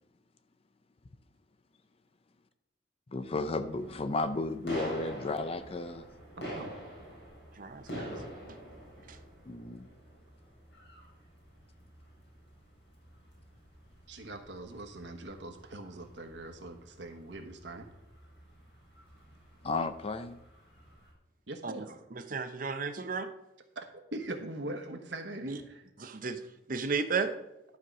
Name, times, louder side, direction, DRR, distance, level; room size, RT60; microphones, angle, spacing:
voice 1, 3.1-6.1 9.5-9.9 19.6-20.4, left 3 dB, 30° left, 11 dB, 0.5 m, -33 dB
sound 1, 3.2-21.1, equal, 70° left, 3.7 m, -47 dB
voice 2, 7.6-8.2 9.1-9.2 21.6-21.9 22.1-23.3 25.4-25.6 26.0-26.4 26.7-27.3, right 5 dB, 45° right, 9 dB, 0.7 m, -34 dB
voice 3, 14.1-17.9 21.5-21.9 23.7-23.8 24.1-25.8, right 2 dB, 65° right, 5 dB, 1.2 m, -41 dB
11.5 x 4.6 x 6.1 m, 0.90 s
head